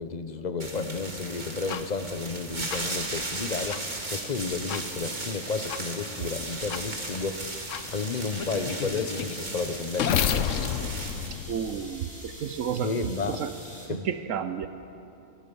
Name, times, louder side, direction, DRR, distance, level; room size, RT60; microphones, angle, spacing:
voice 1, 0.0-10.3 12.8-13.4 13.9-14.1, left 4 dB, 35° left, 10 dB, 0.9 m, -32 dB
sound 1, 0.6-11.3, right 2 dB, 35° right, 2.0 m, -36 dB
sound 2, 1.7-1.8 2.7-2.8 3.7-3.8 4.7-4.8 5.7-5.8 6.7-6.8 7.7-7.8 8.4-12.3, left 8 dB, 70° left, 1.1 m, -30 dB
sound 3, 4.1-13.9, equal, 5° left, 3.0 m, -46 dB
voice 2, 11.5-12.9 13.3-13.5 13.9-14.7, right 8 dB, 75° right, 10 dB, 1.1 m, -31 dB
22.5 x 21.5 x 5.4 m, 2.9 s
omnidirectional pair, 1.4 m